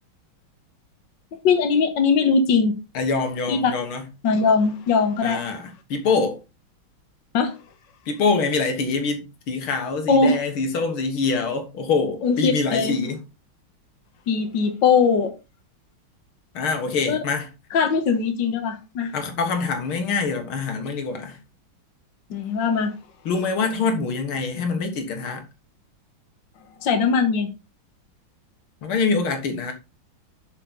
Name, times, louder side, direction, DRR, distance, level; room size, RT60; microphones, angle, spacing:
voice 1, 1.4-2.7 3.5-3.7 4.2-5.4 7.3-7.5 10.1-10.4 12.2-13.0 14.3-15.3 17.1-17.2 17.7-19.1 22.3-22.9 26.8-27.5, left 5 dB, 60° left, 1.8 m, -20 dB
voice 2, 2.9-4.0 5.2-6.4 8.1-13.2 16.5-17.5 19.1-21.4 23.3-25.4 28.8-29.7, left 4 dB, 80° left, 2.4 m, -25 dB
7.4 x 6.6 x 3.9 m
omnidirectional pair, 2.3 m